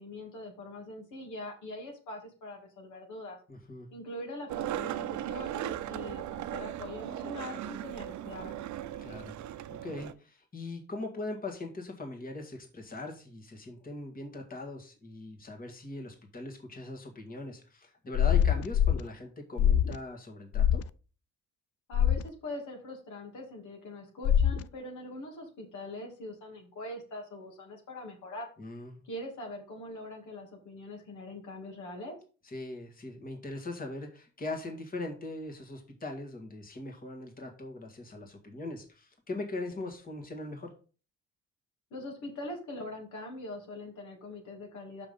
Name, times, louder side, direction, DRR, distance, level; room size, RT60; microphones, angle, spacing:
voice 1, 0.0-3.4 3.9-8.6 21.9-28.5 29.0-32.2 41.9-45.1, left 1 dB, 75° left, 1 dB, 2.7 m, -42 dB
voice 2, 3.5-3.9 9.0-9.4 9.7-20.8 28.6-29.0 32.4-40.7, left 2 dB, 30° left, 3 dB, 1.9 m, -40 dB
Skateboard, 4.5-10.1, right 12 dB, 70° right, 0.6 m, -37 dB
sound 1, 18.1-19.0 19.6-20.0 20.5-20.8 21.9-22.2 24.2-24.6, left 9 dB, 50° left, 0.5 m, -24 dB
5.9 x 5.7 x 5.3 m, 0.37 s
cardioid pair, 90°, 30 cm